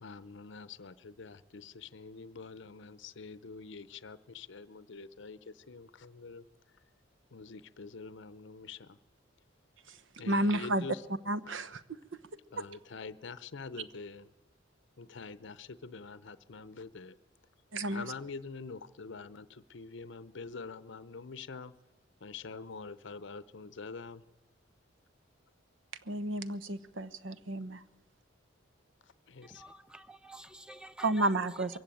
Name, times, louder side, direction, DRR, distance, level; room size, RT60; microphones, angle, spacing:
voice 1, 0.0-6.4 7.3-8.9 10.2-11.0 12.5-14.2 15.0-17.1 17.9-21.7 22.2-24.2 29.3-29.6, left 4 dB, 65° left, 0.7 m, -45 dB
voice 2, 10.3-11.8 12.6-12.7 17.7-18.1 26.1-27.8 31.0-31.8, right 1 dB, 70° right, 1.0 m, -32 dB
voice 3, 29.4-31.3, right 1 dB, 5° right, 0.7 m, -48 dB
22.5 x 15.5 x 9.1 m
head